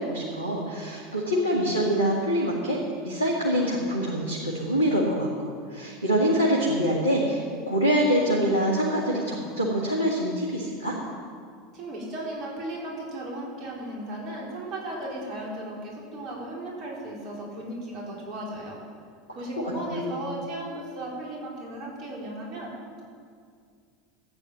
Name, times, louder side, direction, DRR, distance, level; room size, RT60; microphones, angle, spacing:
voice 1, 0.0-11.0 19.9-20.1, equal, 90° left, -4 dB, 1.8 m, -25 dB
voice 2, 11.7-18.8 19.3-22.7, right 1 dB, 45° right, -3 dB, 4.0 m, -36 dB
13.5 x 9.2 x 7.3 m, 2.1 s
figure-of-eight pair, 80°, 0 cm